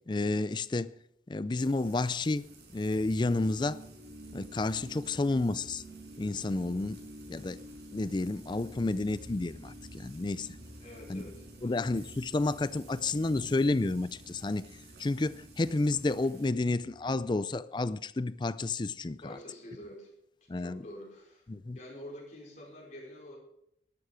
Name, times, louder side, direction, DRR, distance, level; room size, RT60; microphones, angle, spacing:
voice 1, 0.1-0.9 1.3-3.8 4.3-5.8 6.2-7.0 7.3-7.6 7.9-10.5 11.1-11.2 11.6-14.7 15.0-19.2 20.5-20.8 21.5-21.8, left 2 dB, 25° left, 0.4 m, -30 dB
Frying (food), 1.6-16.5, right 2 dB, 70° right, 4.9 m, -55 dB
sound 1, 3.0-17.3, equal, ahead, 4.7 m, -50 dB
voice 2, 10.8-11.7 19.2-20.1 20.5-21.5 21.7-23.4, left 1 dB, 40° left, 4.9 m, -47 dB
12.5 x 12.0 x 5.0 m
head